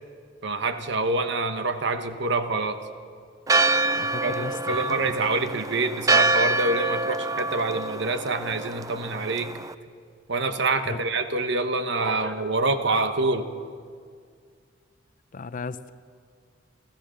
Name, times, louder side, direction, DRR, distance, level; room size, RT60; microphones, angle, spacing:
voice 1, 0.4-2.8 4.0-9.5 10.3-13.5, right 3 dB, 65° right, 9 dB, 1.2 m, -26 dB
Church bell, 3.5-9.7, right 2 dB, 20° right, 0.4 m, -26 dB
voice 2, 3.9-5.1 10.9-11.0 15.3-15.9, left 4 dB, 45° left, 14 dB, 0.6 m, -35 dB
28.0 x 14.5 x 6.5 m, 2.1 s
head